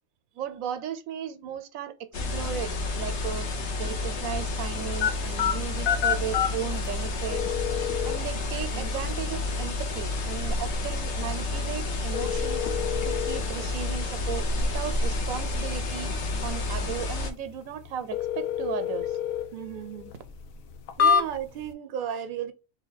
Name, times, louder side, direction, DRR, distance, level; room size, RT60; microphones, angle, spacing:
voice 1, 0.4-3.5 3.8-7.4 8.0-12.7 13.0-14.5 14.7-16.1 16.4-19.2, right 9 dB, 85° right, 1.1 m, -36 dB
sound 1, 2.1-17.3, left 2 dB, 60° left, 1.1 m, -30 dB
sound 2, 5.0-21.7, left 8 dB, 85° left, 1.1 m, -31 dB
voice 2, 19.5-20.1 21.0-22.5, right 8 dB, 50° right, 0.6 m, -34 dB
3.5 x 3.2 x 3.9 m
omnidirectional pair, 1.4 m